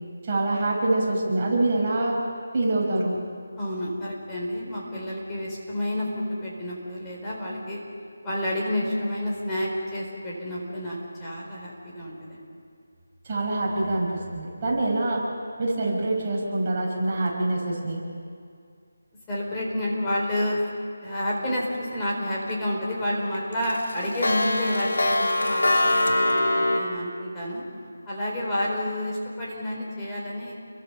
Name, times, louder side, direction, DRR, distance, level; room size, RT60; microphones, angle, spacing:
voice 1, 0.2-2.2 2.5-3.1 13.3-15.2 15.6-18.0, right 2 dB, 25° right, -4 dB, 5.8 m, -25 dB
voice 2, 3.6-7.8 8.2-12.5 14.7-14.8 19.3-20.6 21.0-27.6 28.1-30.5, left 1 dB, 10° left, -5 dB, 4.3 m, -29 dB
Clock, 22.0-22.5 22.9-23.0 23.3-26.8, left 1 dB, 80° left, 3.1 m, -23 dB
30.0 x 23.0 x 5.7 m, 2.3 s
figure-of-eight pair, 170°, 0 cm